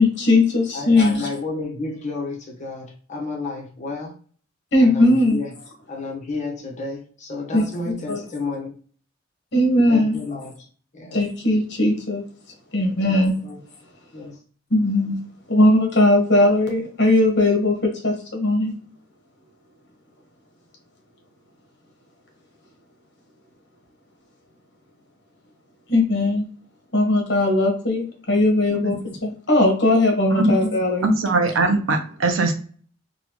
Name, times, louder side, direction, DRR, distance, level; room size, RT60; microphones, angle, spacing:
voice 1, 0.0-1.3 4.7-5.4 7.5-8.2 9.5-10.2 11.1-12.2 12.7-13.4 14.7-15.2 15.5-18.7 25.9-26.4 26.9-31.1, left 1 dB, 60° left, 1.2 m, -19 dB
voice 2, 0.7-4.1 4.8-5.5 5.9-8.7 9.9-10.7 10.9-11.2 13.0-13.2 13.4-13.6 14.1-14.4, left 3 dB, 40° left, 1.1 m, -31 dB
voice 3, 31.0-32.5, right 2 dB, 85° right, 0.7 m, -21 dB
4.0 x 2.3 x 3.0 m
head